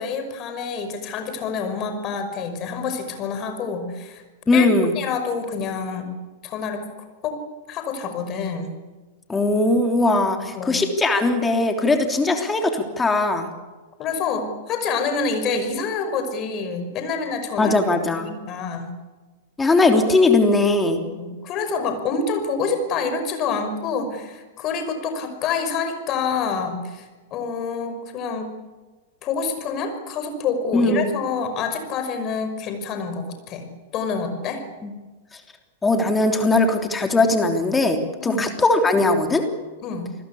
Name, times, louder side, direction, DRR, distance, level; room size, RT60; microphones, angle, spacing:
voice 1, 0.0-4.2 4.5-4.7 5.0-6.1 6.4-6.9 7.2-7.4 7.7-8.7 10.4-10.8 14.0-17.8 18.2-18.9 21.0-27.1 27.3-28.5 29.2-33.7 33.9-34.6 38.2-38.5 39.8-40.1, left 5 dB, 35° left, 7 dB, 5.7 m, -27 dB
voice 2, 4.5-5.0 9.3-13.5 17.6-18.3 19.6-21.0 30.7-31.1 34.8-34.9 35.8-39.4, left 2 dB, 10° left, 5 dB, 3.2 m, -19 dB
28.5 x 20.5 x 8.6 m, 1.3 s
figure-of-eight pair, 100°, 0 cm